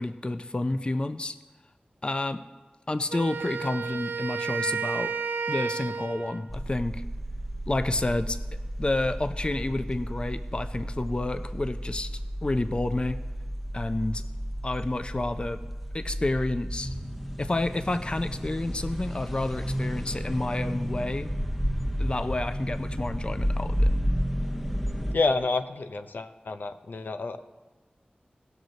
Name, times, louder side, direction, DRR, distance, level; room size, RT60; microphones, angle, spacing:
voice 1, 0.0-1.4 2.0-2.4 2.9-5.1 5.5-7.0 7.7-8.4 8.8-12.1 12.4-13.2 13.7-14.2 14.6-15.6 15.9-17.0 17.4-21.3 22.0-23.9, left 2 dB, 30° left, 11 dB, 0.4 m, -29 dB
Wind instrument woodwind instrument, 3.1-6.5, right 5 dB, 75° right, 0.5 m, -32 dB
sound 1, 6.5-25.2, equal, ahead, 0.7 m, -32 dB
voice 2, 25.1-27.4, left 3 dB, 75° left, 9 dB, 0.6 m, -29 dB
17.5 x 6.3 x 3.9 m, 1.3 s
wide cardioid pair, 70°, 3 cm